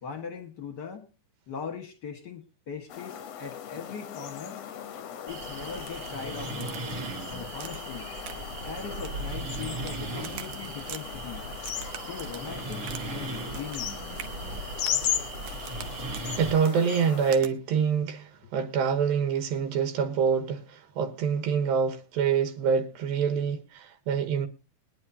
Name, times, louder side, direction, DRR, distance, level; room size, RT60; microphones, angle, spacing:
voice 1, 0.0-1.1 1.5-4.6 5.2-6.7 7.3-8.1 8.7-11.5 12.0-13.9, left 6 dB, 50° left, 1.3 m, -40 dB
sound 1, 2.9-17.3, left 9 dB, 70° left, 1.5 m, -37 dB
sound 2, 5.3-16.6, right 3 dB, 50° right, 2.0 m, -38 dB
Crack, 6.6-7.1 7.6-7.9 8.2-8.6 8.9-10.0 10.2-11.0 11.6-13.1 13.3-13.9 14.2-14.3 14.8-15.1 15.5-15.9 16.1-16.3 16.6-16.8 17.3-17.5, right 10 dB, 70° right, 2.2 m, -43 dB
voice 2, 16.4-24.5, right 6 dB, 85° right, 2.9 m, -26 dB
21.5 x 9.9 x 2.8 m
omnidirectional pair, 4.1 m